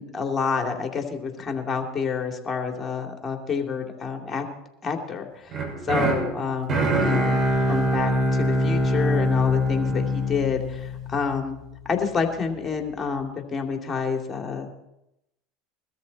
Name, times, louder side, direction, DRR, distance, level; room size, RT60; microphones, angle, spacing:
voice 1, 0.0-4.4 4.8-7.4 7.7-11.6 11.9-14.7, left 5 dB, 25° left, 3 dB, 3.1 m, -28 dB
sound 1, 5.5-11.6, equal, 40° right, 5.7 m, -24 dB
21.5 x 13.5 x 4.3 m, 0.86 s
hypercardioid pair, 90°, 0 cm